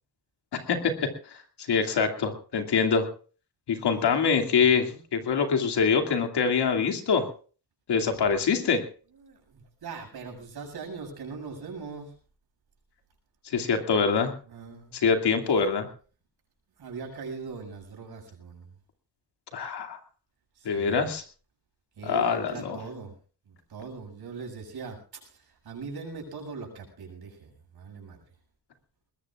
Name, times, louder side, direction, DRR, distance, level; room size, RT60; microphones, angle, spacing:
voice 1, 0.5-1.4 1.7-3.1 3.7-7.2 7.9-8.8 13.5-14.3 15.0-15.9 19.5-20.0 20.6-21.2 22.0-22.8, left 5 dB, 75° left, 5 dB, 2.6 m, -24 dB
voice 2, 4.5-5.0 9.2-12.1 14.5-14.9 16.8-18.7 20.5-21.1 22.0-23.1 23.4-28.2, right 5 dB, 65° right, 2 dB, 7.4 m, -41 dB
21.5 x 20.5 x 2.5 m, 0.39 s
wide cardioid pair, 150°, 40 cm